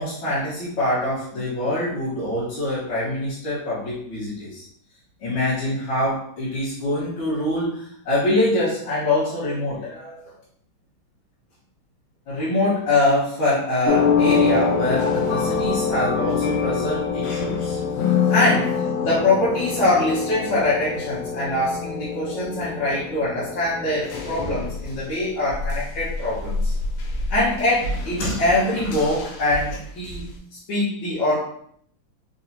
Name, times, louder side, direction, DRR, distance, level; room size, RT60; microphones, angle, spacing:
voice 1, 0.0-4.6 5.2-10.2 12.3-17.8 18.0-26.7 27.3-30.2 30.7-31.4, left 1 dB, 70° left, -10 dB, 2.0 m, -24 dB
sound 1, 13.9-25.2 25.5-30.3, left 5 dB, 85° left, 1.6 m, -25 dB
4.6 x 2.8 x 2.7 m, 0.64 s
omnidirectional pair, 2.3 m